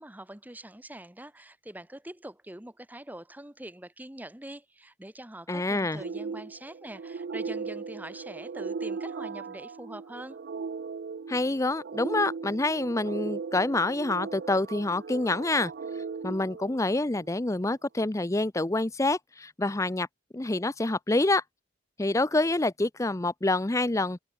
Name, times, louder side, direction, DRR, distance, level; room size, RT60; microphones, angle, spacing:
voice 1, 0.0-10.4, right 1 dB, 10° right, 1.2 m, -44 dB
voice 2, 5.5-6.0 11.3-15.7 16.2-20.1 20.3-21.4 22.0-24.2, left 2 dB, 15° left, 0.6 m, -27 dB
sound 1, 5.9-17.3, right 5 dB, 55° right, 0.4 m, -37 dB
head